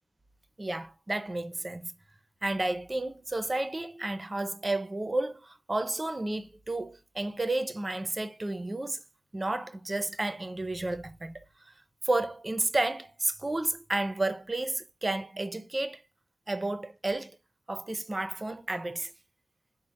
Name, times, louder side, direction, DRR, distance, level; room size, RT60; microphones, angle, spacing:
voice 1, 0.6-2.0 2.4-9.0 9.3-11.4 12.0-16.0 16.5-17.4 17.7-19.1, right 2 dB, 30° right, 0.5 m, -32 dB
5.1 x 2.0 x 4.3 m
wide cardioid pair, 100°, 0 cm